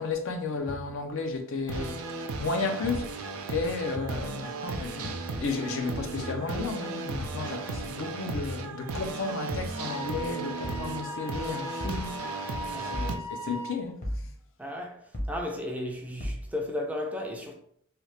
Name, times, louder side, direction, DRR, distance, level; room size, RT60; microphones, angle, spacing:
voice 1, 0.0-2.0 2.4-5.1 5.4-12.2 12.4-14.0, left 4 dB, 60° left, 0.5 m, -33 dB
sound 1, 0.7-0.8 1.7-1.8 2.8-2.9 4.0-4.1 5.0-5.2 6.2-6.4 7.2-7.4 8.4-8.6 9.5-9.7 10.6-10.9 11.8-12.0 12.9-13.2 14.0-14.2 15.1-15.4 16.2-16.4, left 1 dB, 35° left, 0.8 m, -35 dB
sound 2, 1.7-13.2, right 3 dB, 70° right, 0.4 m, -36 dB
Wind instrument woodwind instrument, 9.7-13.7, equal, 90° left, 1.3 m, -39 dB
voice 2, 12.6-13.0 14.6-15.0 15.3-17.5, left 1 dB, 5° right, 0.4 m, -34 dB
3.2 x 2.3 x 3.1 m
head